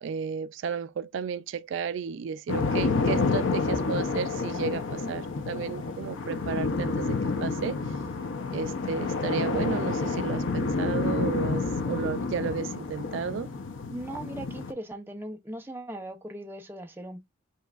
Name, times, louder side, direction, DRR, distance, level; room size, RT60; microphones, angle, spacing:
voice 1, 0.0-8.0 8.5-13.5, right 6 dB, 70° right, 0.3 m, -33 dB
sound 1, 2.5-14.7, left 3 dB, 75° left, 0.7 m, -29 dB
voice 2, 13.9-17.2, right 1 dB, 10° right, 0.6 m, -39 dB
5.6 x 3.0 x 2.4 m
head